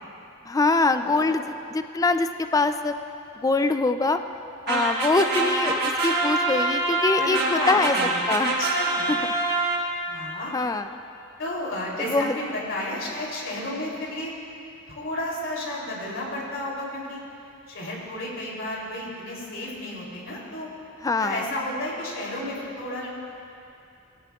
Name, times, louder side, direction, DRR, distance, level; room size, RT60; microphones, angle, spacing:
voice 1, 0.5-2.9 3.4-4.2 4.7-7.9 8.3-8.6 9.1-9.2 10.5-10.9 12.1-12.3 21.0-21.4, left 3 dB, 15° left, 9 dB, 0.3 m, -23 dB
voice 2, 1.0-1.4 7.1-8.1 8.6-9.1 10.0-10.5 11.4-14.3 14.9-17.2 17.7-20.7 21.2-23.1, left 1 dB, 65° left, -4 dB, 3.1 m, -32 dB
sound 1, 4.7-10.2, right 2 dB, 50° right, 1.5 m, -25 dB
17.5 x 16.5 x 2.4 m, 2.7 s
head